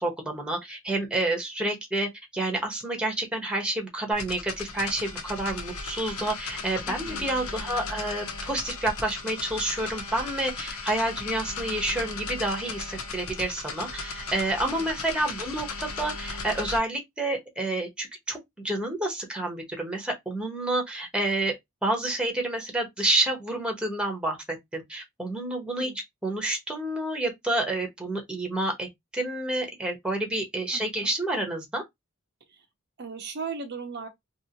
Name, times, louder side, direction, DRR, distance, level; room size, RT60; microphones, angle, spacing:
voice 1, 0.0-18.4 18.6-21.5 21.8-25.9 26.2-28.9 29.1-31.8, right 1 dB, 5° right, 1.0 m, -29 dB
sound 1, 4.1-16.8, left 4 dB, 80° left, 0.8 m, -36 dB
voice 2, 6.9-7.4 14.6-14.9 25.8-26.0 30.7-31.1 32.5-32.7 33.0-34.1, right 5 dB, 50° right, 0.6 m, -38 dB
3.0 x 2.7 x 2.8 m
head